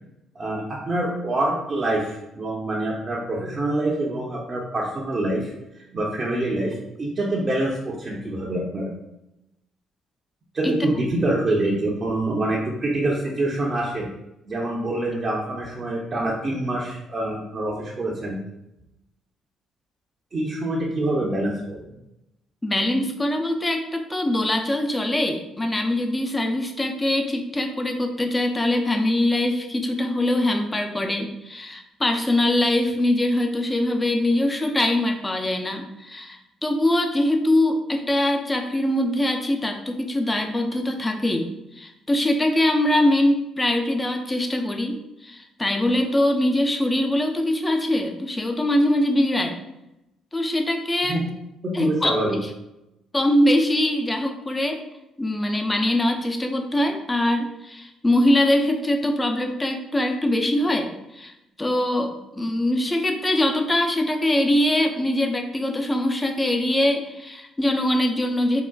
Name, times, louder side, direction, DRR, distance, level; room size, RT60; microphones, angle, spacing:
voice 1, 0.4-5.5 5.8-8.9 10.5-14.1 14.5-18.4 20.3-21.8 51.0-51.2 51.6-52.4, right 1 dB, 40° right, -4 dB, 0.6 m, -26 dB
voice 2, 22.6-41.5 41.8-49.6 50.3-51.2 51.7-52.1 53.1-54.8 55.2-61.3 61.6-68.6, left 1 dB, 20° left, 4 dB, 0.5 m, -23 dB
3.7 x 2.1 x 2.2 m, 0.89 s
hypercardioid pair, 55°, 0 cm